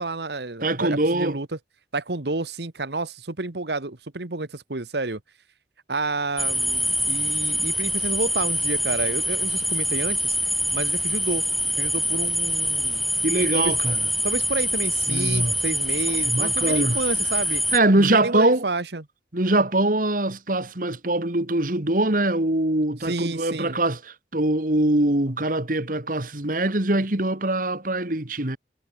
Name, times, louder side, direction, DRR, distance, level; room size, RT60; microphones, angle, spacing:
voice 1, 0.0-1.5 1.9-5.2 5.9-10.4 10.7-11.4 11.8-13.0 13.5-13.7 14.2-17.6 18.0-19.0 23.0-23.8, right 3 dB, 70° right, 1.5 m, -30 dB
voice 2, 0.6-1.4 13.2-14.0 15.1-15.5 16.2-17.0 17.7-18.6 19.3-28.6, right 2 dB, 50° right, 2.2 m, -23 dB
sound 1, 6.4-17.8, equal, ahead, 0.7 m, -25 dB
head